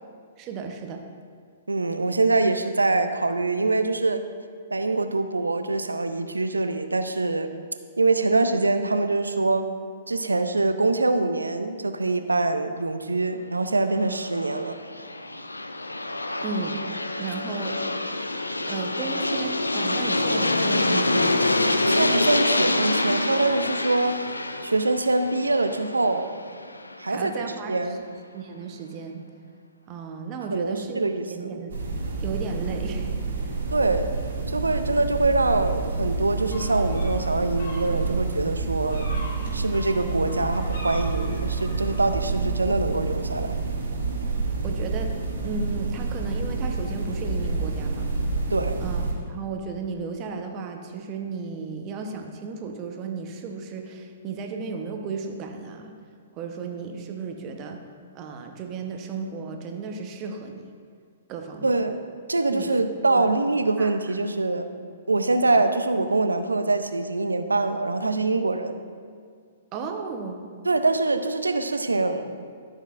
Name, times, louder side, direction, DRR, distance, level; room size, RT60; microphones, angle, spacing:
voice 1, 0.4-1.0 16.4-16.8 17.1-17.8 18.6-21.4 27.1-28.0 28.3-29.2 29.9-31.0 31.3-31.7 32.2-33.1 44.6-45.1 45.4-48.1 48.8-55.9 56.3-57.8 58.1-60.7 61.3-61.8 62.5-62.7 63.1-63.3 63.8-64.2 69.7-70.4, right 5 dB, 30° right, 4 dB, 0.9 m, -34 dB
voice 2, 1.7-4.2 4.7-7.5 8.0-9.7 10.1-14.8 21.9-24.2 24.6-26.3 27.0-28.0 30.5-31.6 33.7-34.1 34.5-39.1 39.5-43.6 48.5-48.8 61.6-62.0 62.3-64.7 65.1-68.7 70.6-72.3, right 3 dB, 80° right, 9 dB, 0.5 m, -24 dB
Aircraft, 14.1-26.9, left 2 dB, 85° left, 0.4 m, -26 dB
sound 1, 31.7-49.1, right 3 dB, 65° right, 1.7 m, -28 dB
sound 2, 36.5-42.1, left 1 dB, 60° left, 1.9 m, -42 dB
12.5 x 6.5 x 2.5 m, 2.1 s
figure-of-eight pair, 115°, 0 cm